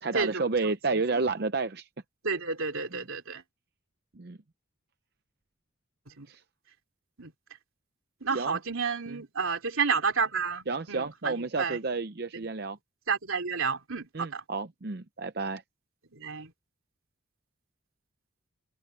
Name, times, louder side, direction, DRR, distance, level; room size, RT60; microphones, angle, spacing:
voice 1, 0.0-1.9 2.9-3.0 4.1-4.4 6.3-6.4 8.3-8.6 9.1-9.2 10.7-12.8 14.1-15.6, right 3 dB, 50° right, 0.7 m, -31 dB
voice 2, 2.2-3.4 6.1-6.3 7.2-7.3 8.2-11.8 13.1-14.4 16.1-16.5, right 5 dB, 90° right, 3.2 m, -30 dB
head